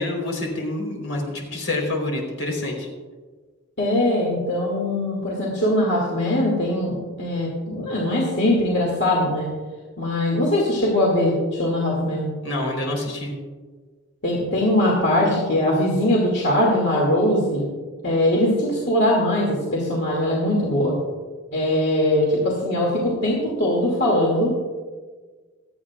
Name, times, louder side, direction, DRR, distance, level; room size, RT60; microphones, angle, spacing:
voice 1, 0.0-2.9 12.4-13.3, left 2 dB, 70° left, -1 dB, 3.9 m, -27 dB
voice 2, 3.8-9.5 10.0-12.3 14.2-17.6 18.0-20.9 21.5-24.5, left 1 dB, 55° left, -4 dB, 2.4 m, -21 dB
27.0 x 9.2 x 2.4 m, 1.4 s
head